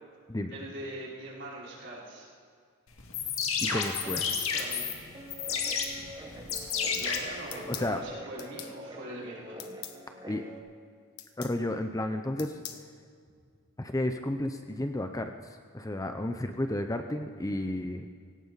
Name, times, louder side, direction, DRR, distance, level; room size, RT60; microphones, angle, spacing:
voice 1, 0.5-2.3 4.0-4.9 6.6-6.7 6.9-9.7, right 1 dB, 55° right, -6 dB, 4.8 m, -42 dB
sound 1, 3.0-8.0, left 6 dB, 70° left, 2.0 m, -32 dB
voice 2, 3.6-4.2 7.7-8.0 10.3-10.4 11.4-12.8 13.8-18.1, left 1 dB, 15° left, 6 dB, 0.6 m, -32 dB
Guitar, 5.1-10.6, equal, 20° right, 1.2 m, -46 dB
sound 2, 7.5-7.9 8.4-8.7 9.6-10.0 11.2-11.6 12.4-12.8, left 11 dB, 85° left, 1.2 m, -42 dB
17.5 x 17.5 x 4.1 m, 2.2 s
head